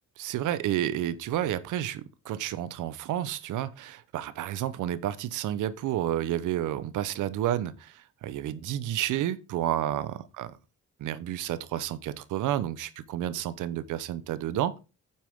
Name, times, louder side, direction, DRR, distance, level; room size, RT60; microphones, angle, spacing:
voice 1, 0.2-10.5 11.0-14.8, right 12 dB, 85° right, 0.9 m, -30 dB
9.9 x 7.3 x 3.7 m
cardioid pair, 90°, 30 cm